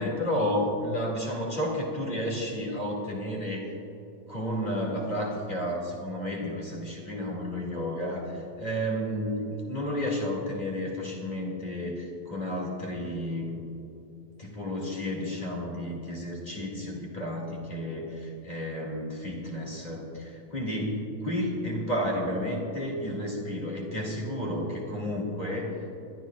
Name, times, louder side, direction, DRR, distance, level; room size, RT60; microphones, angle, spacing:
voice 1, 0.0-3.7 4.3-13.6 14.4-25.8, equal, 30° left, -2 dB, 2.3 m, -32 dB
25.5 x 12.5 x 2.4 m, 2.8 s
omnidirectional pair, 1.6 m